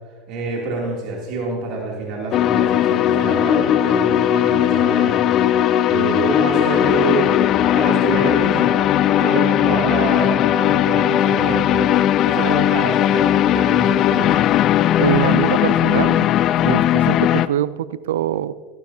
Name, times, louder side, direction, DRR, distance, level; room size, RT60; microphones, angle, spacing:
voice 1, 0.3-5.2 5.9-14.5, right 3 dB, 60° right, -3 dB, 2.8 m, -26 dB
sound 1, 2.3-17.5, left 11 dB, 50° left, 0.4 m, -17 dB
voice 2, 15.0-16.3 16.6-18.5, right 12 dB, 85° right, 18 dB, 0.4 m, -23 dB
16.5 x 11.5 x 2.8 m, 1.6 s
hypercardioid pair, 95°, 0 cm